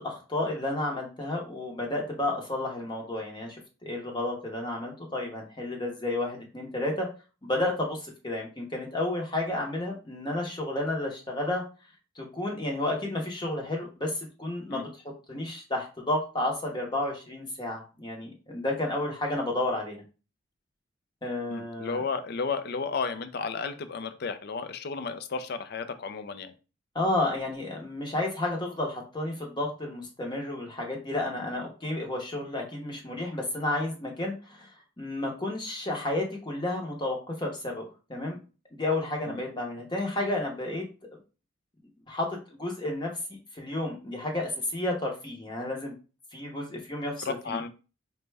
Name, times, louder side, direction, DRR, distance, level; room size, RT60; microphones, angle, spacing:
voice 1, 0.0-7.1 7.4-11.6 12.2-14.9 15.3-20.0 21.2-22.0 26.9-34.7 35.0-38.4 38.7-40.8 42.1-43.1 43.5-45.9 46.3-47.6, left 2 dB, 20° left, 0 dB, 0.8 m, -31 dB
voice 2, 21.5-26.5 39.3-39.4 47.2-47.7, left 5 dB, 50° left, 11 dB, 0.4 m, -33 dB
5.1 x 2.2 x 3.2 m, 0.34 s
head